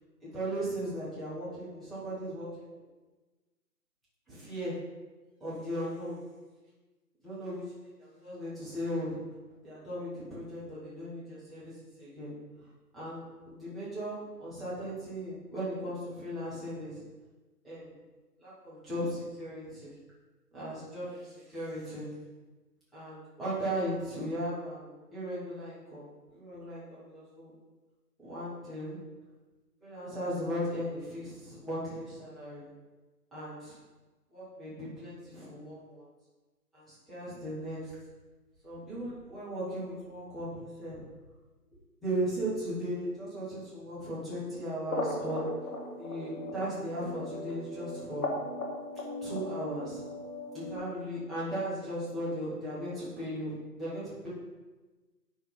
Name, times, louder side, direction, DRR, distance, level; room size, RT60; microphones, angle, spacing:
voice 1, 0.3-2.8 4.3-4.7 5.4-6.2 7.2-7.6 8.2-9.2 9.6-11.7 12.0-12.3 12.9-17.0 17.6-17.9 18.4-19.9 20.5-22.1 22.9-27.5 28.2-29.0 29.8-32.7 33.3-33.8 34.3-36.1 36.7-37.9 38.6-41.0 42.0-45.4 46.0-48.3 49.2-50.0 50.5-54.3, equal, ahead, -12 dB, 0.6 m, -37 dB
sound 1, 44.9-50.8, left 1 dB, 60° left, 1.8 m, -38 dB
9.6 x 3.6 x 5.2 m, 1.2 s
hypercardioid pair, 165°, 49 cm